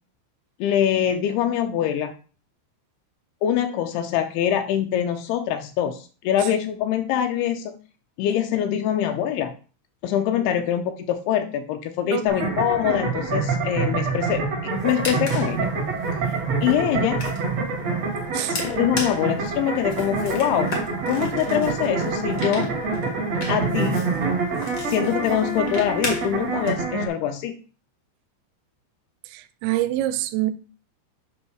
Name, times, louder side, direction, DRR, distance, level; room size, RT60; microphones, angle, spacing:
voice 1, 0.6-2.1 3.4-7.7 8.2-9.5 10.0-14.4 14.8-15.7 16.6-17.2 18.5-20.7 21.1-22.7 23.5-24.0 24.8-27.6, left 10 dB, 90° left, 2.3 m, -24 dB
voice 2, 12.1-12.6 18.3-18.6 29.3-30.5, right 15 dB, 90° right, 2.9 m, -26 dB
sound 1, 12.3-27.1, right 4 dB, 45° right, 2.4 m, -26 dB
sound 2, 14.7-26.7, left 1 dB, 70° left, 0.9 m, -37 dB
8.3 x 3.1 x 6.1 m
omnidirectional pair, 5.2 m